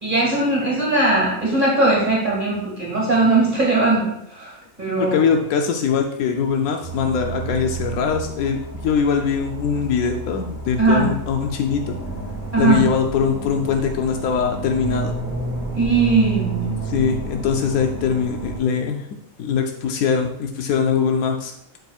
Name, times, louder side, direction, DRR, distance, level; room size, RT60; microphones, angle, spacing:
voice 1, 0.0-5.2 10.8-11.1 12.5-12.8 15.7-16.7, right 2 dB, 35° right, -4 dB, 2.0 m, -19 dB
voice 2, 4.9-12.0 12.6-15.1 16.8-19.1 19.4-21.5, left 6 dB, 85° left, 4 dB, 1.1 m, -22 dB
sound 1, 6.8-18.6, right 3 dB, 15° right, 3.0 m, -30 dB
11.5 x 5.3 x 2.4 m, 0.78 s
omnidirectional pair, 1.5 m